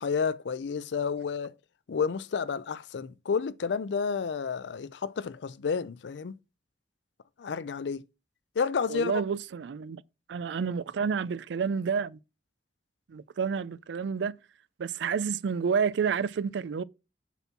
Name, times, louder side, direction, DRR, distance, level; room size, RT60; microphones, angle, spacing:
voice 1, 0.0-1.5 1.9-6.4 7.4-8.1 8.6-9.2, left 5 dB, 85° left, 0.4 m, -30 dB
voice 2, 8.9-10.0 10.3-12.2 13.1-14.4 14.8-16.8, right 6 dB, 90° right, 0.4 m, -29 dB
7.0 x 4.3 x 5.8 m
head